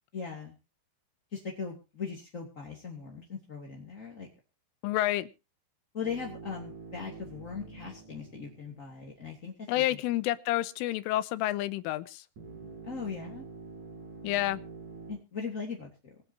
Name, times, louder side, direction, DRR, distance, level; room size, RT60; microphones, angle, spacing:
voice 1, 0.1-0.6 1.3-4.3 5.9-10.0 12.8-13.4 15.1-16.2, left 5 dB, 25° left, -1 dB, 2.0 m, -39 dB
voice 2, 4.8-5.3 9.7-12.2 14.2-14.6, left 15 dB, 90° left, 14 dB, 3.5 m, -29 dB
sound 1, 6.0-9.4 12.4-15.1, right 4 dB, 40° right, 6.8 m, -46 dB
25.0 x 9.1 x 2.8 m, 0.32 s
omnidirectional pair, 5.6 m